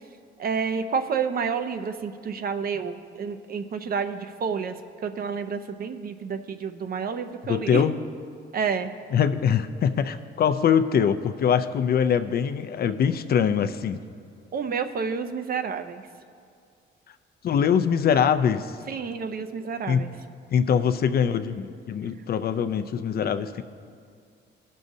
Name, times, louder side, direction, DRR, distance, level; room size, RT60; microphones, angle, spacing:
voice 1, 0.4-4.7 5.0-7.8 8.5-8.9 14.5-16.0 18.9-20.1, right 6 dB, 50° right, 9 dB, 0.6 m, -29 dB
voice 2, 7.5-8.0 9.1-14.0 17.4-18.8 19.9-20.1 20.5-23.6, left 7 dB, 50° left, 10 dB, 0.4 m, -23 dB
17.5 x 6.3 x 2.7 m, 2.3 s
cardioid pair, 90°, 20 cm